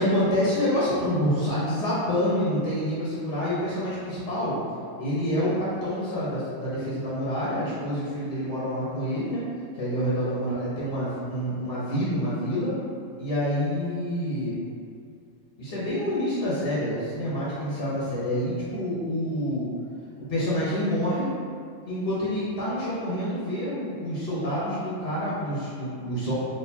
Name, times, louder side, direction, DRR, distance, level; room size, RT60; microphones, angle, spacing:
voice 1, 0.0-4.6 5.0-9.4 9.7-12.7 13.2-14.6 15.6-19.7 20.3-21.3 21.8-26.3, equal, 45° left, -9 dB, 1.1 m, -27 dB
4.2 x 2.9 x 2.8 m, 2.3 s
omnidirectional pair, 1.5 m